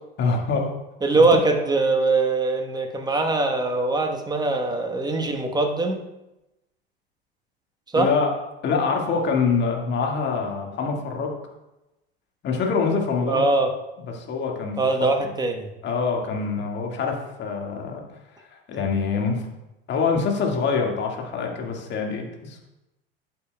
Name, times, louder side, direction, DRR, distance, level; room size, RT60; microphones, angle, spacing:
voice 1, 0.2-0.7 1.2-1.3 7.9-8.3 8.6-11.4 12.4-13.4 14.1-14.8 15.8-18.0 18.7-19.5 19.9-22.6, left 5 dB, 35° left, 1 dB, 1.9 m, -25 dB
voice 2, 1.0-6.0 7.9-8.1 13.3-13.7 14.8-15.7, right 3 dB, 15° right, 4 dB, 1.2 m, -22 dB
11.5 x 8.4 x 2.3 m, 0.96 s
figure-of-eight pair, 75°, 31 cm